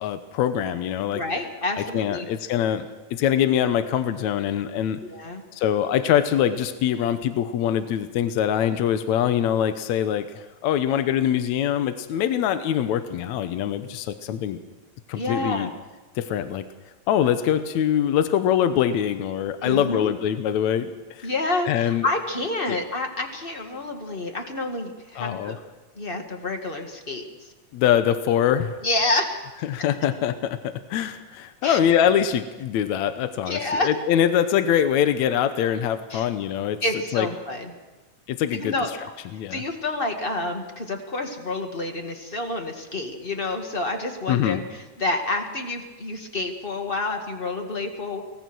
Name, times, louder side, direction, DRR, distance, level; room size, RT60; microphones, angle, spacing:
voice 1, 0.0-1.2 1.8-5.0 5.5-14.6 15.1-15.7 16.2-16.7 17.1-21.3 21.7-22.1 22.7-22.8 25.2-25.6 27.7-28.8 29.6-36.8 37.1-37.3 38.3-39.0 39.3-39.6 44.3-44.6, left 10 dB, 80° left, 10 dB, 2.2 m, -23 dB
voice 2, 1.1-2.3 5.1-5.4 15.1-15.7 19.6-20.1 21.2-25.6 25.9-27.2 28.8-29.5 31.6-31.8 33.5-33.9 36.1-36.3 36.8-37.7 38.5-38.9 39.5-44.6 45.0-48.2, left 2 dB, 25° left, 4 dB, 1.6 m, -28 dB
24.0 x 18.5 x 6.2 m, 1.2 s
omnidirectional pair, 3.3 m